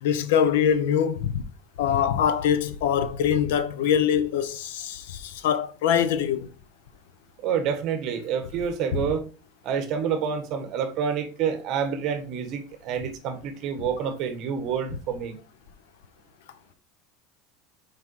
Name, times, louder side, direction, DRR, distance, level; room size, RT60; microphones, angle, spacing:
voice 1, 0.0-1.4 1.8-6.5, left 8 dB, 85° left, 1.0 m, -23 dB
voice 2, 7.4-9.2 9.6-15.4, right 7 dB, 50° right, 1.5 m, -28 dB
5.9 x 4.9 x 4.7 m
supercardioid pair, 140°, 0 cm